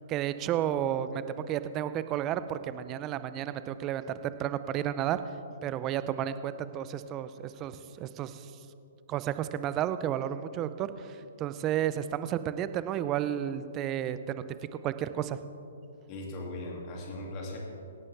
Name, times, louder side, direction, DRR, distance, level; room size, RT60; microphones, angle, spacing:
voice 1, 0.1-5.2 5.6-8.5 9.1-14.4 14.8-15.4, right 11 dB, 25° right, 13 dB, 0.6 m, -32 dB
voice 2, 16.1-17.6, left 1 dB, 35° left, -1 dB, 2.5 m, -39 dB
17.0 x 11.0 x 3.5 m, 2.7 s
hypercardioid pair, 130°, 0 cm